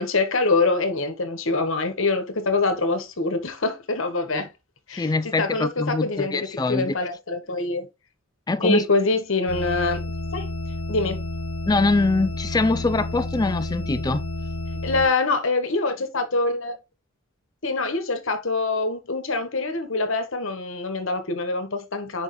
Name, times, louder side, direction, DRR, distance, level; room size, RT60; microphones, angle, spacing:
voice 1, 0.0-4.5 4.9-7.9 8.6-10.0 10.3-10.4 10.9-11.3 14.8-16.8 17.6-22.2, left 3 dB, 60° left, 1.3 m, -24 dB
voice 2, 4.9-6.9 8.5-8.8 11.7-14.2, left 3 dB, 20° left, 0.4 m, -23 dB
sound 1, 9.5-15.1, left 2 dB, 90° left, 1.1 m, -31 dB
6.3 x 4.9 x 3.1 m
head